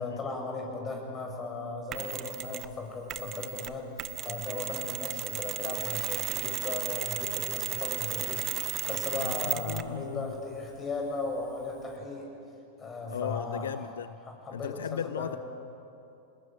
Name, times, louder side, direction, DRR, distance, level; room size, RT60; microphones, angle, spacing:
voice 1, 0.0-12.3 12.8-13.7 14.3-15.4, left 3 dB, 25° left, 1 dB, 7.2 m, -37 dB
Mechanisms, 1.9-2.7 3.1-10.0, right 12 dB, 35° right, 1.0 m, -34 dB
voice 2, 9.2-10.4 13.1-14.2 14.5-15.4, left 9 dB, 75° left, 15 dB, 0.5 m, -36 dB
25.5 x 20.5 x 9.2 m, 2.8 s
hypercardioid pair, 95°, 0 cm